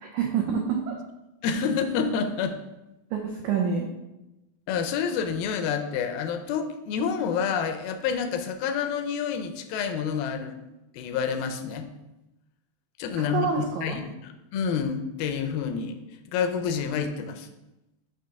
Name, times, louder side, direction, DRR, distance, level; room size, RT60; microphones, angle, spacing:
voice 1, 0.0-1.0 3.1-3.9 13.2-14.0, right 6 dB, 85° right, 1 dB, 1.6 m, -27 dB
voice 2, 1.4-2.6 4.7-10.6 10.9-11.9 13.0-13.5 13.8-16.0 16.3-17.5, left 6 dB, 85° left, 7 dB, 2.4 m, -28 dB
7.3 x 3.0 x 5.7 m, 0.95 s
omnidirectional pair, 4.3 m